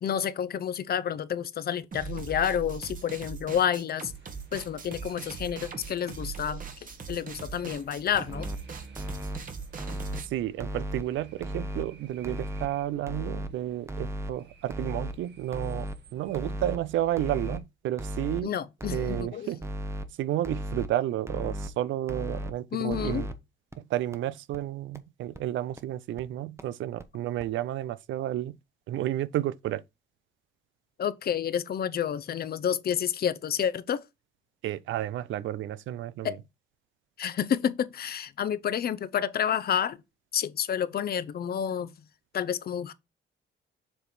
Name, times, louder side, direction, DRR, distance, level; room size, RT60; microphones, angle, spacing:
voice 1, 0.0-4.1 4.5-6.6 7.1-8.5 18.4-19.5 22.7-23.3 31.0-34.0 36.2-36.4 37.2-40.0 40.3-41.9 42.3-42.9, left 9 dB, 50° left, 0.7 m, -29 dB
sound 1, 1.9-10.3, right 6 dB, 45° right, 1.4 m, -40 dB
sound 2, 4.1-17.6, right 5 dB, 60° right, 1.6 m, -52 dB
sound 3, 8.1-8.6 9.0-9.4 9.8-10.2 10.6-11.0 11.4-11.8 12.2-12.7 13.1-13.5 13.9-14.3 14.7-15.1 15.5-15.9 16.3-16.8 17.2-17.6 18.0-18.4 18.8-19.2 19.6-20.1 20.4-20.9 21.3-21.7 22.1-22.5 22.9-23.3 23.7-23.8 24.1-24.2 24.5-24.6 25.0-25.1 25.3-25.4 25.8-25.9 26.2-26.3 26.6-26.7 27.0-27.1 27.4-27.5, right 1 dB, 15° right, 0.9 m, -35 dB
voice 2, 10.3-18.5 18.9-19.6 20.2-23.3 23.8-28.6 28.9-29.8 34.6-36.4, right 13 dB, 75° right, 0.5 m, -31 dB
7.2 x 3.3 x 4.3 m
cardioid pair, 90°, 20 cm